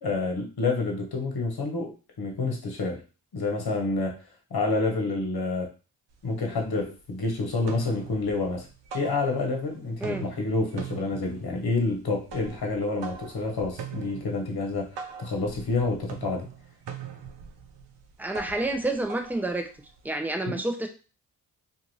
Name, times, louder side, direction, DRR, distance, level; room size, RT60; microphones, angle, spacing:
voice 1, 0.0-3.0 3.3-4.2 4.5-5.7 6.2-8.7 8.9-16.5 20.5-20.6, left 3 dB, 55° left, 2 dB, 1.1 m, -28 dB
sound 1, 6.1-6.2 6.5-7.2 7.5-9.7 9.9-20.1, right 7 dB, 65° right, 0.7 m, -42 dB
voice 2, 18.2-19.7 20.0-20.9, right 2 dB, 5° right, 4 dB, 0.6 m, -29 dB
2.5 x 2.5 x 3.1 m, 0.33 s
supercardioid pair, 40°, 46 cm